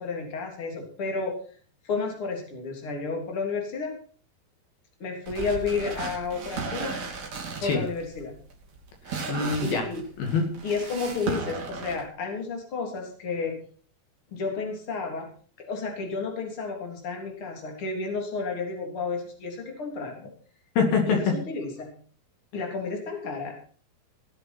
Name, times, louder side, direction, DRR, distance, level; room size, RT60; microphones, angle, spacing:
voice 1, 0.0-1.3 1.8-3.9 5.0-6.9 7.6-8.3 9.6-10.0 10.6-13.6 14.3-15.3 15.6-20.3 21.1-22.0 22.5-23.6, left 4 dB, 35° left, 1 dB, 4.0 m, -31 dB
sound 1, 5.3-12.0, right 4 dB, 50° right, 4.1 m, -35 dB
voice 2, 9.1-9.9 10.2-10.5 20.8-21.2, left 4 dB, 70° left, 2 dB, 4.0 m, -25 dB
19.0 x 7.9 x 6.0 m, 0.43 s
omnidirectional pair, 4.4 m